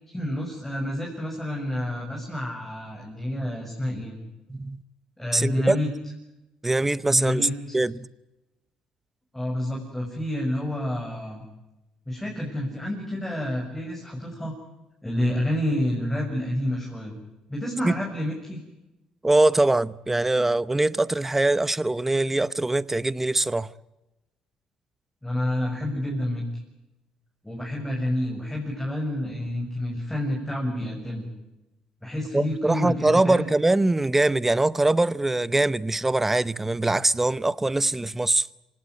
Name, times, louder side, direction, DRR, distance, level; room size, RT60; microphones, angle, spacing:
voice 1, 0.1-4.2 5.2-5.9 7.0-7.8 9.3-11.4 12.1-14.5 15.0-17.1 17.5-18.6 25.2-26.4 27.4-31.3 32.0-33.5, left 1 dB, 5° left, 6.7 m, -29 dB
voice 2, 4.5-4.8 5.3-5.8 6.6-7.5 7.7-8.1 17.8-17.9 19.2-23.7 32.3-38.5, right 2 dB, 15° right, 0.8 m, -22 dB
26.5 x 18.0 x 9.4 m
cardioid pair, 90°, 2 cm